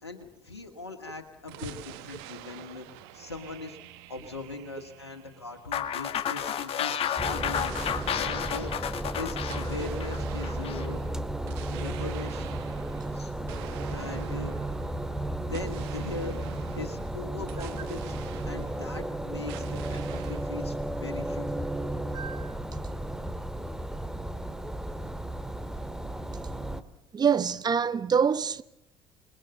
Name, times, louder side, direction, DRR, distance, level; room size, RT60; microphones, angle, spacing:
voice 1, 0.0-2.9 3.1-3.8 4.1-8.7 9.2-11.0 11.7-12.5 13.1-13.3 13.9-14.6 15.5-16.4 16.8-18.1 18.4-21.6, left 3 dB, 85° left, 1.8 m, -40 dB
sound 1, 1.5-6.2 7.5-19.1 19.5-20.6, right 15 dB, 65° right, 1.5 m, -46 dB
sound 2, 5.7-10.9, left 9 dB, 45° left, 1.9 m, -31 dB
sound 3, 7.2-26.8, right 1 dB, 5° right, 1.9 m, -34 dB
voice 2, 22.1-22.5 27.1-28.6, right 6 dB, 30° right, 1.0 m, -25 dB
28.0 x 21.0 x 7.9 m
figure-of-eight pair, 60°, 14 cm